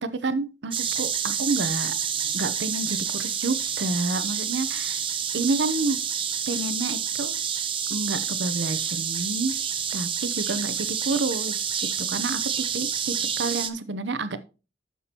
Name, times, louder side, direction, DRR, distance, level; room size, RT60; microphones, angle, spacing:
voice 1, 0.0-2.0 2.3-5.0 5.3-6.0 6.5-7.3 7.9-9.6 9.9-11.6 12.1-14.4, right 3 dB, 80° right, 12 dB, 0.8 m, -29 dB
sound 1, 0.7-13.7, right 8 dB, 30° right, 0.7 m, -28 dB
11.0 x 7.1 x 2.9 m, 0.32 s
head